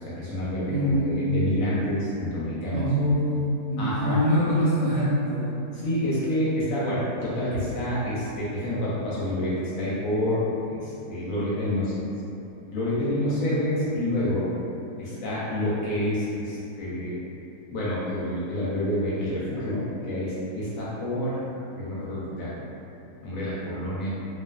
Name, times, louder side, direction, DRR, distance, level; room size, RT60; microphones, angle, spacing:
voice 1, 0.0-2.9 3.8-4.2 5.7-12.0 12.7-14.5 15.0-17.2 17.7-21.4 21.8-22.5 23.2-24.1, left 1 dB, 70° left, -8 dB, 0.9 m, -28 dB
voice 2, 0.6-1.3 2.7-5.6 13.4-13.5, equal, 65° right, -10 dB, 0.8 m, -24 dB
2.4 x 2.3 x 2.2 m, 2.8 s
omnidirectional pair, 1.6 m